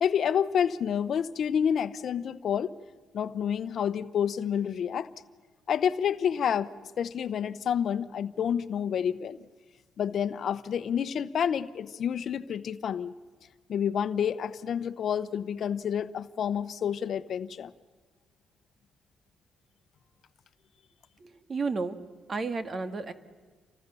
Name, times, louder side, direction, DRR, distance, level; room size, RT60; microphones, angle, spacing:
voice 1, 0.0-2.8 3.1-5.1 5.7-6.7 7.0-9.4 10.0-13.1 13.7-17.7, left 8 dB, 60° left, 0.9 m, -29 dB
voice 2, 21.2-22.0 22.3-23.1, right 4 dB, 40° right, 1.9 m, -32 dB
29.0 x 25.0 x 7.0 m
cardioid pair, 90°, 0 cm